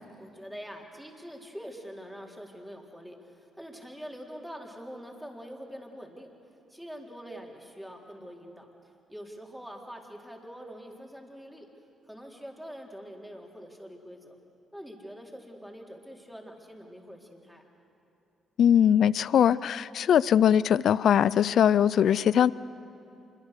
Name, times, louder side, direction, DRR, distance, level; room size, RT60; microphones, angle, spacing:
voice 1, 0.2-6.3 6.7-8.7 9.1-11.7 12.0-14.4 14.7-17.6, equal, ahead, 0 dB, 3.9 m, -44 dB
voice 2, 18.6-22.5, left 9 dB, 65° left, 20 dB, 0.4 m, -21 dB
26.0 x 22.5 x 6.7 m, 2.8 s
supercardioid pair, 55°, 0 cm